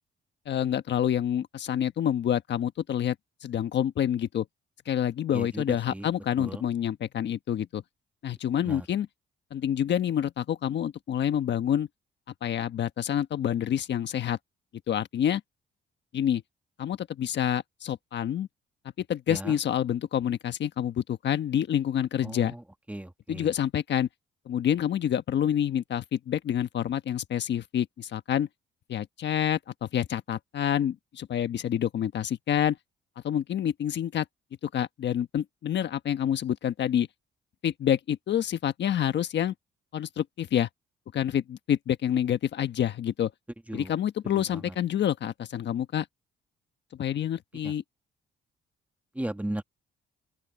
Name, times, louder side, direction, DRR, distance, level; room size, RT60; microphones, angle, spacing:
voice 1, 0.5-3.1 3.4-4.5 4.9-7.8 8.2-9.1 9.5-11.9 12.4-14.4 14.9-15.4 16.1-16.4 16.8-18.5 19.0-22.5 23.3-24.1 24.5-28.5 28.9-32.8 33.2-34.2 34.6-37.1 37.6-39.5 39.9-40.7 41.1-43.3 43.7-46.1 46.9-47.8, left 10 dB, 65° left, 1.4 m, -27 dB
voice 2, 5.3-5.6 5.9-6.1 6.4-6.6 8.6-8.8 19.3-19.6 22.2-22.6 22.9-23.5 43.7-43.9 49.2-49.6, right 1 dB, 5° right, 1.7 m, -35 dB
open air
cardioid pair, 90°, 20 cm